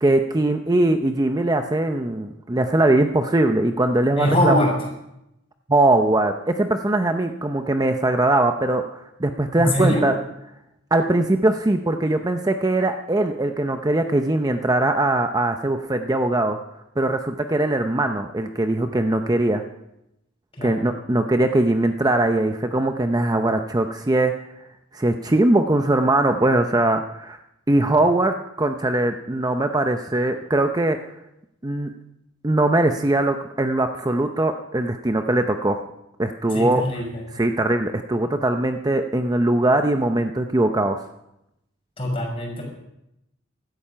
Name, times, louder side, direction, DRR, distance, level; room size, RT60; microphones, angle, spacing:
voice 1, 0.0-4.5 5.7-10.2 10.9-16.6 17.0-19.6 20.6-24.3 24.9-27.4 27.7-31.0 31.6-31.9 32.4-35.8 36.2-37.0 37.3-41.0, right 2 dB, 20° right, 6 dB, 0.6 m, -21 dB
voice 2, 4.2-4.7 9.6-10.1 20.6-20.8 36.5-37.2 42.0-42.6, left 1 dB, 30° left, 0 dB, 5.4 m, -22 dB
16.5 x 13.0 x 5.7 m, 0.85 s
head